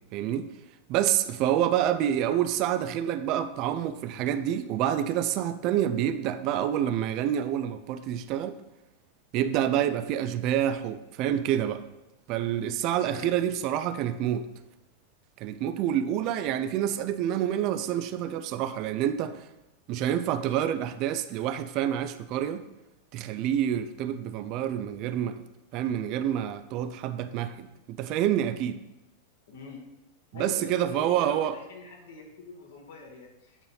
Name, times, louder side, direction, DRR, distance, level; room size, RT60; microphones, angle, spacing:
voice 1, 0.1-0.5 0.9-8.6 9.3-11.8 12.3-14.5 15.4-19.5 19.9-22.6 23.1-25.5 25.7-28.8 30.3-31.6, right 10 dB, 40° right, 0.5 m, -28 dB
voice 2, 29.5-29.9 30.3-33.6, left 4 dB, 60° left, 1.7 m, -44 dB
9.6 x 4.1 x 5.5 m
figure-of-eight pair, 90°, 0 cm